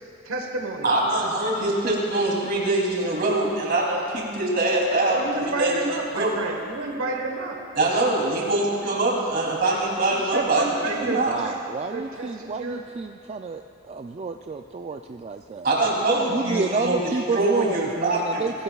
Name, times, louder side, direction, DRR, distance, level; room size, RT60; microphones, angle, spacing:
voice 1, 0.2-1.3 5.1-7.6 10.1-11.6 11.9-12.8, right 3 dB, 75° right, 1 dB, 1.3 m, -30 dB
voice 2, 0.8-6.3 7.8-11.4 15.6-17.0 17.3-18.4, right 2 dB, 45° right, -3 dB, 2.9 m, -23 dB
voice 3, 11.0-15.7 16.3-18.6, right 4 dB, 30° right, 6 dB, 0.3 m, -30 dB
21.0 x 16.5 x 2.3 m, 2.7 s
head